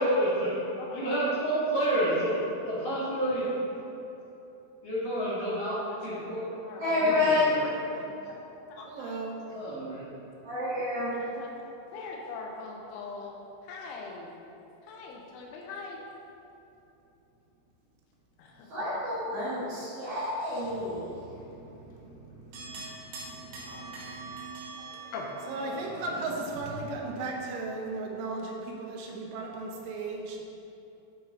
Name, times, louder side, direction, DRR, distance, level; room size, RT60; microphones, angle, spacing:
voice 1, 0.0-0.6 0.9-3.5 4.8-6.5 6.9-7.7 9.5-10.1 24.7-24.9 25.2-25.3 25.6-26.2, right 1 dB, 50° left, -10 dB, 2.0 m, -30 dB
voice 2, 0.8-1.2 6.1-6.2 6.6-7.3 7.6-8.1 8.7-9.1 11.1-11.5 11.9-13.3 13.7-14.3 14.9-16.0 18.4-18.7 23.7-23.9 25.1-25.3, left 4 dB, 85° left, -1 dB, 2.3 m, -42 dB
voice 3, 6.8-7.5 10.4-11.1 18.7-21.2 23.2-23.3 23.8-23.9, left 2 dB, 50° right, -10 dB, 1.8 m, -28 dB
voice 4, 8.9-9.4 25.5-30.4, right 3 dB, 85° right, 0 dB, 3.3 m, -35 dB
sound 1, 22.5-26.1, right 4 dB, 65° right, 3.3 m, -43 dB
9.1 x 5.2 x 3.9 m, 3.0 s
omnidirectional pair, 5.3 m